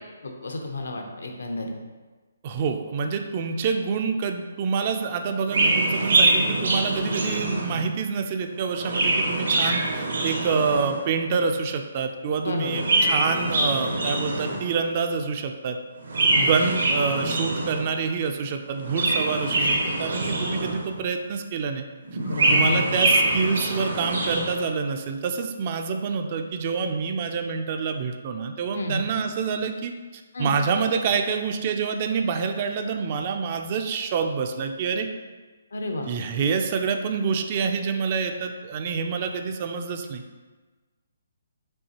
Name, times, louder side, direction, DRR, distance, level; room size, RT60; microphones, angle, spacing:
voice 1, 0.2-1.7 12.4-12.8 16.3-16.5 22.3-23.0 28.7-29.0 30.3-30.5 35.7-36.1, left 1 dB, 80° left, 3 dB, 0.7 m, -30 dB
voice 2, 2.4-15.8 16.3-21.8 22.5-35.1 36.1-40.2, right 5 dB, 35° right, 6 dB, 0.3 m, -27 dB
Chirp tweet, 5.5-7.9 8.6-11.1 12.6-14.8 16.0-17.9 18.7-21.0 22.1-24.6, right 2 dB, 75° right, 1.0 m, -24 dB
5.3 x 3.2 x 2.9 m, 1.3 s
hypercardioid pair, 155°, 0 cm